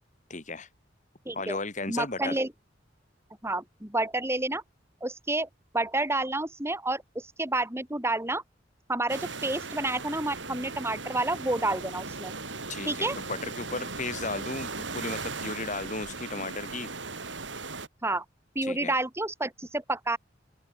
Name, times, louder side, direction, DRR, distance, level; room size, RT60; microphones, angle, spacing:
voice 1, 0.3-0.7 1.3-2.4 12.7-16.9 18.6-18.9, left 3 dB, 40° left, 5.2 m, -35 dB
voice 2, 1.2-1.6 1.9-2.5 3.4-4.6 5.0-5.5 5.7-8.4 8.9-12.3 12.8-13.2 18.0-18.2 18.5-20.2, right 2 dB, 15° right, 2.9 m, -29 dB
sound 1, 9.1-17.9, right 4 dB, 80° right, 5.9 m, -38 dB
open air
head